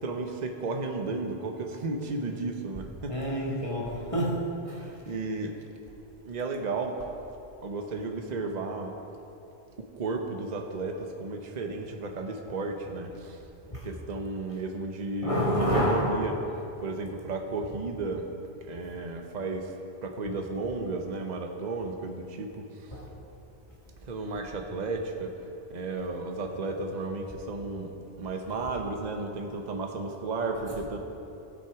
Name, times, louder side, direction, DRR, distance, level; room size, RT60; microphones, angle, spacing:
voice 1, 0.0-3.5 4.8-5.5 6.3-7.0 7.6-8.9 9.8-13.4 13.8-16.3 16.8-18.3 18.7-19.7 20.0-22.6 24.1-25.3 25.7-31.0, right 3 dB, 45° right, 3 dB, 0.9 m, -33 dB
sound 1, 2.7-6.6 6.9-7.3 7.5-8.1 8.4-8.9, left 1 dB, 75° left, 2.0 m, -49 dB
voice 2, 3.1-5.0 13.7-13.9 15.2-16.2 22.9-23.1, equal, 30° left, -5 dB, 1.6 m, -28 dB
17.0 x 6.0 x 4.8 m, 2.8 s
omnidirectional pair, 1.1 m